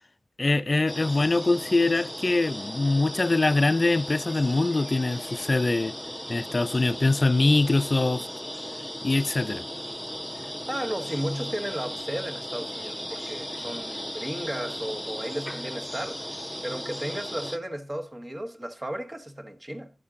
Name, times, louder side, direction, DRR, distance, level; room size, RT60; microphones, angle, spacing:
voice 1, 0.4-5.9 6.3-8.2 9.0-9.6, left 2 dB, 40° left, 0.4 m, -23 dB
sound 1, 0.9-17.6, equal, 5° left, 0.7 m, -36 dB
voice 2, 10.3-19.9, right 1 dB, 25° right, 1.0 m, -34 dB
11.5 x 4.3 x 3.7 m
cardioid pair, 45°, 0 cm